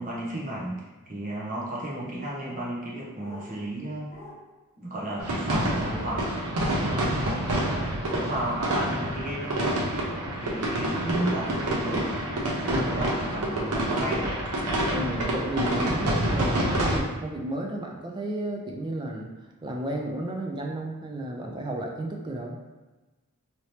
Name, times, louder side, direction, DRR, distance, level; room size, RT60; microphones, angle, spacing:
voice 1, 0.0-4.2 4.8-6.3 6.7-7.3 8.0-9.7 10.4-12.1 12.6-14.3, right 1 dB, 35° right, -5 dB, 0.8 m, -33 dB
sound 1, 3.2-3.5 4.1-4.4 5.1-5.3 5.9-6.3 6.9-7.1 9.1-9.3 10.1-10.4 11.7-11.8 12.6-12.7, left 2 dB, 30° left, 0.6 m, -47 dB
sound 2, 5.2-17.0, right 1 dB, 85° right, 0.8 m, -27 dB
voice 2, 12.7-13.1 14.9-19.3 19.6-22.6, right 1 dB, 20° right, 0 dB, 0.4 m, -32 dB
2.9 x 2.8 x 3.2 m, 1.2 s
head